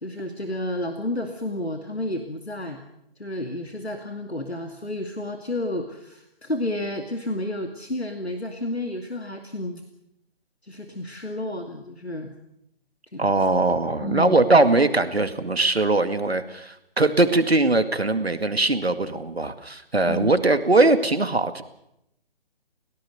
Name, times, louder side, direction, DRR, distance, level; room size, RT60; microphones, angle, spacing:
voice 1, 0.0-2.8 3.2-9.8 10.6-12.3 13.1-13.3 14.0-14.4 20.1-20.3, left 1 dB, 90° left, 5 dB, 2.5 m, -31 dB
voice 2, 13.2-21.6, right 2 dB, 80° right, 9 dB, 2.3 m, -21 dB
29.5 x 17.5 x 6.7 m, 0.83 s
figure-of-eight pair, 145°, 31 cm